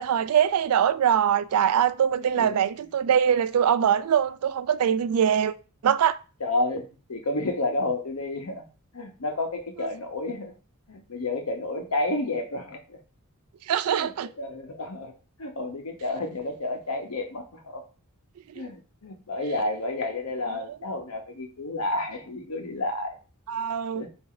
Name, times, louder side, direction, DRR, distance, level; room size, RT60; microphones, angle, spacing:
voice 1, 0.0-5.5 5.8-6.2 13.7-14.3 20.5-20.8 23.5-24.1, right 8 dB, 85° right, 0.3 m, -23 dB
voice 2, 6.4-8.6 8.9-10.5 10.9-13.0 13.9-14.1 14.4-15.1 15.4-17.8 18.5-23.2 23.9-24.1, left 2 dB, 85° left, 0.9 m, -30 dB
4.2 x 2.7 x 3.8 m
head